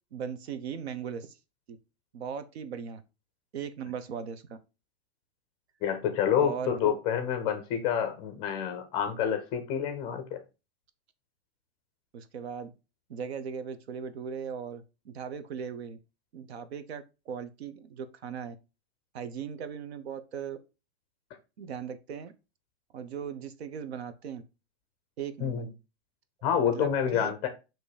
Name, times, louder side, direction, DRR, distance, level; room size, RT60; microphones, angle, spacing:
voice 1, 0.1-1.4 1.7-1.8 2.1-3.0 3.5-4.6 6.4-6.9 12.1-12.7 13.1-16.0 16.3-18.6 19.1-20.6 21.6-22.3 22.9-24.4 25.2-25.6 26.6-27.3, right 7 dB, 75° right, 1.1 m, -38 dB
voice 2, 5.8-10.4 25.4-25.7 26.4-27.5, left 8 dB, 15° left, 0.5 m, -28 dB
7.8 x 3.1 x 5.0 m
supercardioid pair, 175°, 32 cm